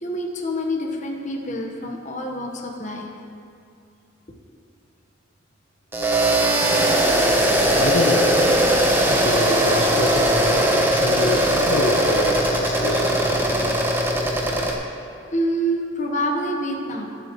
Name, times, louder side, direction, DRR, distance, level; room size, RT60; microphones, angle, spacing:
voice 1, 0.0-3.1 15.3-17.1, equal, 40° left, 0 dB, 1.2 m, -26 dB
sound 1, 5.9-14.7, right 1 dB, 10° right, 0.9 m, -19 dB
voice 2, 7.8-8.6 9.1-13.7, left 2 dB, 70° left, 1 dB, 0.8 m, -26 dB
21.5 x 7.9 x 3.1 m, 2.5 s
head